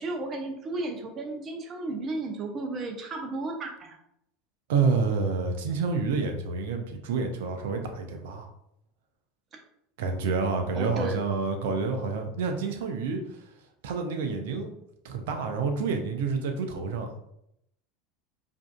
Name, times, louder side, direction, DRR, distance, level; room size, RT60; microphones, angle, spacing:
voice 1, 0.0-4.0 9.5-9.6 10.7-11.2, right 2 dB, 35° right, 3 dB, 0.8 m, -33 dB
voice 2, 4.7-8.5 10.0-13.2 13.8-14.7 15.0-17.1, right 4 dB, 65° right, 5 dB, 0.6 m, -28 dB
4.8 x 2.7 x 2.4 m, 0.77 s
hypercardioid pair, 80°, 0 cm